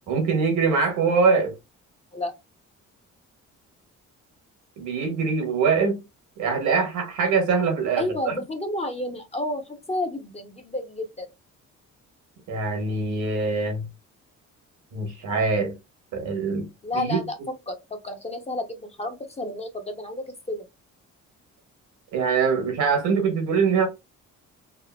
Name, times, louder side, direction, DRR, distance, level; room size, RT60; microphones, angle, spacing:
voice 1, 0.1-1.5 4.8-6.0 6.4-8.3 12.5-13.8 14.9-15.7 16.1-16.7 16.9-17.2 22.1-23.9, right 5 dB, 75° right, 1.2 m, -23 dB
voice 2, 8.0-11.3 16.8-17.4 17.7-17.8 18.0-20.7, left 1 dB, 20° left, 0.6 m, -31 dB
3.6 x 2.0 x 2.2 m
cardioid pair, 90°, 30 cm